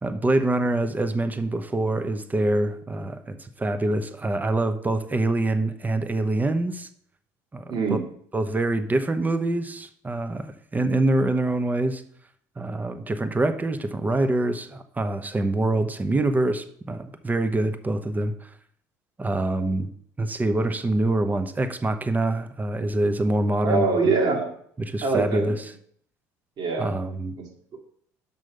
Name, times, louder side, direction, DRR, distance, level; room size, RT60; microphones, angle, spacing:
voice 1, 0.0-6.9 7.5-8.0 8.3-12.0 12.6-18.3 19.2-19.9 20.2-23.9 24.8-25.6 26.8-27.3, right 2 dB, 20° right, 9 dB, 0.9 m, -25 dB
voice 2, 7.7-8.0 23.6-24.5 25.0-25.6 26.6-26.9 27.4-27.5, right 4 dB, 50° right, 1 dB, 2.2 m, -24 dB
6.2 x 5.6 x 5.1 m, 0.62 s
hypercardioid pair, 65°, 9 cm